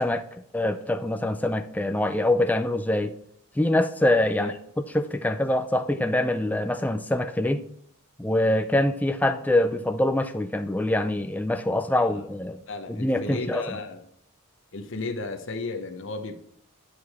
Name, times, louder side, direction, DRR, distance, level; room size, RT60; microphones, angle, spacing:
voice 1, 0.0-3.1 3.6-7.6 8.2-12.6 12.9-13.6, left 1 dB, 5° left, 0.3 m, -24 dB
voice 2, 12.7-14.0 14.7-16.4, left 3 dB, 55° left, 0.8 m, -34 dB
10.0 x 4.8 x 4.3 m
head